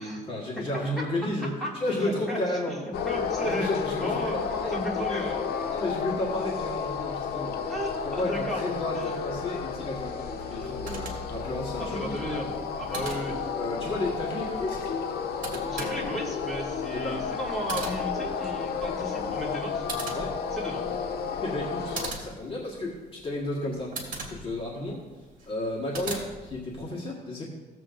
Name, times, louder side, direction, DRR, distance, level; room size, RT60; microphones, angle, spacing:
voice 1, 0.0-2.8 3.4-4.8 5.7-7.6 8.0-12.5 13.6-14.9 16.9-17.3 20.1-20.3 21.4-23.9 24.3-25.0 25.5-27.5, left 1 dB, 35° left, -5 dB, 1.5 m, -32 dB
voice 2, 2.0-3.7 4.0-4.4 4.7-5.4 7.7-8.7 8.9-9.1 10.5-10.8 11.8-13.4 15.7-19.9 20.5-20.8, equal, ahead, -6 dB, 2.4 m, -34 dB
sound 1, 2.9-22.1, left 6 dB, 70° left, 0.8 m, -32 dB
sound 2, 10.6-26.8, right 3 dB, 55° right, 2.0 m, -42 dB
15.0 x 7.5 x 2.5 m, 1.3 s
cardioid pair, 145°, 17 cm